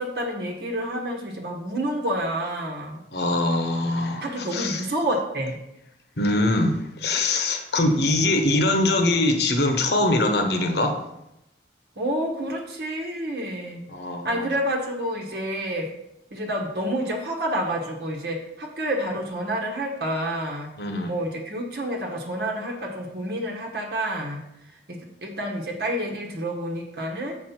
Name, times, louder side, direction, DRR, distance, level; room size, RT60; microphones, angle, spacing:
voice 1, 0.0-3.0 4.2-5.6 12.0-13.8 14.2-15.9 16.3-20.7 21.1-24.4 24.9-27.4, right 1 dB, 60° right, 1 dB, 1.2 m, -29 dB
voice 2, 3.1-4.8 6.2-10.9 13.9-14.5 20.8-21.1, left 2 dB, 60° left, 5 dB, 1.0 m, -23 dB
7.1 x 4.5 x 5.8 m, 0.85 s
head